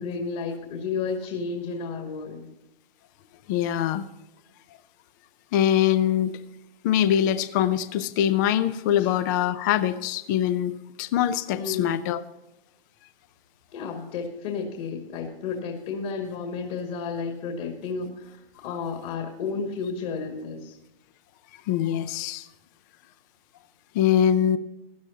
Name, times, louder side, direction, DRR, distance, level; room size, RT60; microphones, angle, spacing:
voice 1, 0.0-2.5 9.0-9.1 11.5-12.1 13.7-20.8, left 5 dB, 35° left, 2 dB, 2.0 m, -32 dB
voice 2, 3.5-4.0 5.5-6.3 6.8-10.7 11.0-12.2 21.7-22.5 23.9-24.6, left 10 dB, 20° left, 14 dB, 0.5 m, -23 dB
16.5 x 12.5 x 2.8 m, 0.93 s
hypercardioid pair, 145°, 30 cm